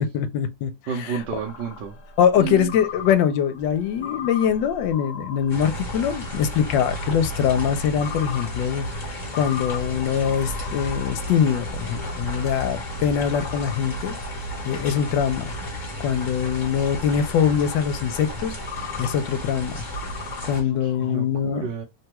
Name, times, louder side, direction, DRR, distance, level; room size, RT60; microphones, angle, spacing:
voice 1, 0.0-0.7 1.0-1.2 2.2-14.1 14.6-15.5 16.0-18.6 19.0-19.8 20.5-21.6, left 8 dB, 80° left, 1.3 m, -23 dB
voice 2, 0.9-2.0 2.3-2.7 20.8-21.8, right 6 dB, 75° right, 1.3 m, -30 dB
sound 1, 1.2-15.6 16.0-21.1, left 6 dB, 50° left, 1.1 m, -40 dB
sound 2, 5.5-20.6, equal, 30° left, 1.0 m, -33 dB
3.4 x 2.3 x 2.8 m
omnidirectional pair, 2.0 m